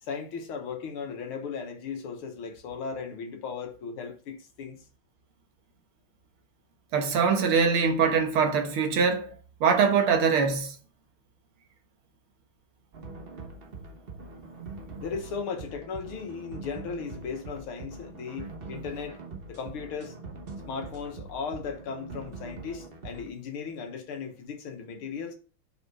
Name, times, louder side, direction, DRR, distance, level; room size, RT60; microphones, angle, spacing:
voice 1, 0.0-4.8 15.0-19.2 19.5-20.2 20.7-25.3, left 5 dB, 85° left, 2.1 m, -36 dB
voice 2, 6.9-9.4 9.6-10.8, right 6 dB, 85° right, 2.2 m, -23 dB
sound 1, 12.9-23.3, right 3 dB, 35° right, 1.0 m, -43 dB
5.8 x 5.3 x 4.8 m
omnidirectional pair, 2.3 m